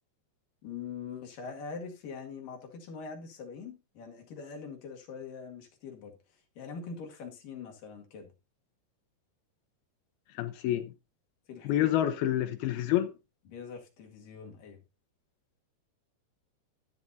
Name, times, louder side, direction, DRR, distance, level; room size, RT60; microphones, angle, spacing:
voice 1, 0.6-6.1 6.6-8.3 11.5-11.9 13.5-14.8, left 5 dB, 55° left, 3.4 m, -43 dB
voice 2, 10.3-10.9 11.7-13.1, left 12 dB, 75° left, 2.4 m, -28 dB
13.0 x 10.5 x 2.7 m
omnidirectional pair, 5.1 m